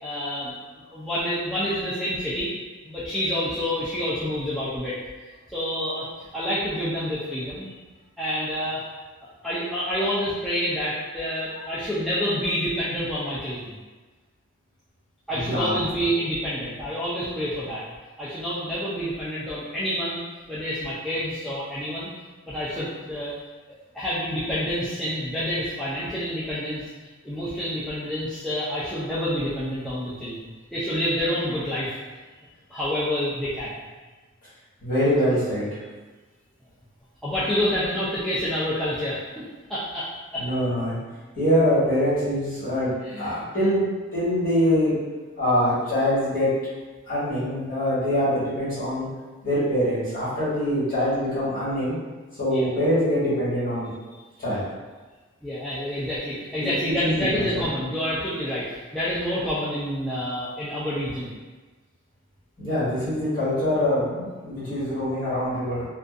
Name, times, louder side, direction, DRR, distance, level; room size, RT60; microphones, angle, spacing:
voice 1, 0.0-0.5 0.9-2.5 2.9-4.9 5.5-6.1 6.3-7.7 8.2-8.8 9.4-13.8 15.3-17.8 18.2-20.2 20.5-22.1 22.4-23.3 23.9-26.8 27.2-31.9 32.7-33.7 37.2-39.4 39.7-40.4 43.0-43.4 50.9-51.0 52.5-52.7 55.4-61.3, equal, ahead, -12 dB, 0.3 m, -28 dB
voice 2, 15.3-15.7 34.8-35.8 40.4-40.9 41.4-42.9 43.2-43.9 44.1-45.0 45.4-46.5 47.1-49.1 49.4-51.9 52.4-53.9 54.4-54.6 56.6-57.6 62.6-65.9, equal, 40° left, -12 dB, 1.4 m, -24 dB
2.5 x 2.2 x 2.4 m, 1.3 s
head